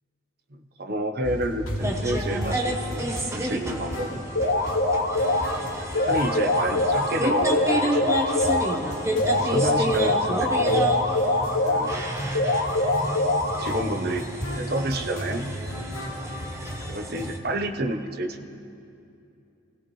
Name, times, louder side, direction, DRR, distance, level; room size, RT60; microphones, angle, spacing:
voice 1, 0.5-4.2 5.8-8.4 9.2-10.9 11.6-12.1 13.4-14.2 14.5-15.5 16.6-18.5, right 1 dB, 50° right, 5 dB, 0.9 m, -30 dB
sound 1, 1.2-17.3, equal, 85° left, 2.3 m, -35 dB
sound 2, 1.8-17.4, right 1 dB, 15° right, 0.9 m, -31 dB
sound 3, 4.4-5.6 6.0-8.8 9.2-12.0 12.4-13.9, left 2 dB, 65° left, 1.3 m, -24 dB
26.0 x 16.5 x 3.2 m, 2.6 s
head